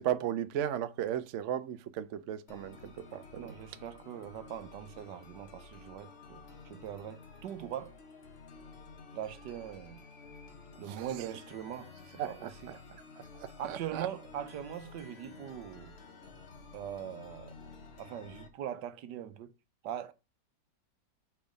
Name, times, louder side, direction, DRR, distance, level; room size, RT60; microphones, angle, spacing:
voice 1, 0.0-3.5 10.9-11.0 12.2-12.8 13.4-14.1, right 10 dB, 65° right, 0.7 m, -35 dB
sound 1, 2.5-18.5, left 4 dB, 40° left, 1.3 m, -52 dB
voice 2, 3.1-8.0 9.1-10.0 10.8-11.9 12.3-12.7 13.6-15.9 16.7-17.6 18.0-19.5 19.8-20.1, right 10 dB, 80° right, 1.4 m, -41 dB
5.3 x 4.6 x 5.1 m
omnidirectional pair, 1.8 m